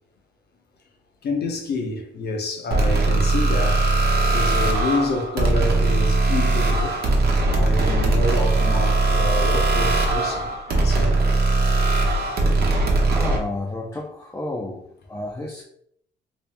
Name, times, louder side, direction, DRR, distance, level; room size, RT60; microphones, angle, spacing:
voice 1, 1.2-3.9 4.3-7.0 7.5-11.3, left 2 dB, 55° left, 0.8 m, -28 dB
sound 1, 2.7-13.4, right 2 dB, 50° right, 1.0 m, -20 dB
voice 2, 13.1-15.6, left 2 dB, 15° left, 0.7 m, -31 dB
2.9 x 2.9 x 3.4 m
cardioid pair, 90°, 20 cm